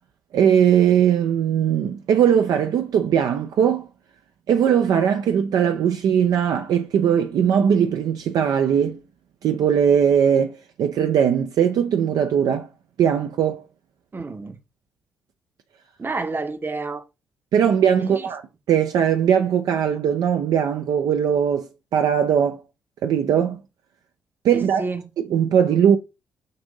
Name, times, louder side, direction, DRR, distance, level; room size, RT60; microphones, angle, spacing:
voice 1, 0.3-3.9 4.5-9.0 9.4-12.7 13.0-13.6 17.5-18.4 18.7-22.6 23.0-23.6 24.4-24.9 25.2-26.0, right 8 dB, 55° right, 0.4 m, -19 dB
voice 2, 14.1-14.6 16.0-17.0 18.0-18.3 24.8-25.0, right 3 dB, 25° right, 0.7 m, -29 dB
5.3 x 2.6 x 3.8 m
figure-of-eight pair, 40°, 8 cm